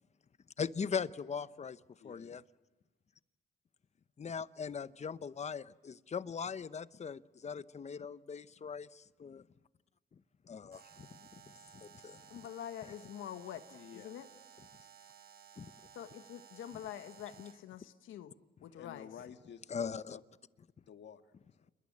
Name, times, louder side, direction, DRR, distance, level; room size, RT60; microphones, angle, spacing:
voice 1, 0.6-1.8 2.0-2.4 4.2-9.4 10.5-11.1 11.7-12.2 19.7-20.2, left 6 dB, 35° left, 15 dB, 0.9 m, -40 dB
voice 2, 2.0-2.4 13.7-14.1 18.8-20.2 20.9-21.3, left 8 dB, 60° left, 8 dB, 1.8 m, -52 dB
Alarm, 10.7-17.7, right 8 dB, 50° right, 1.2 m, -58 dB
voice 3, 12.3-14.3 15.9-18.3 18.6-19.1, left 10 dB, 80° left, 10 dB, 1.4 m, -46 dB
29.0 x 21.5 x 8.6 m, 1.2 s
cardioid pair, 90°, 20 cm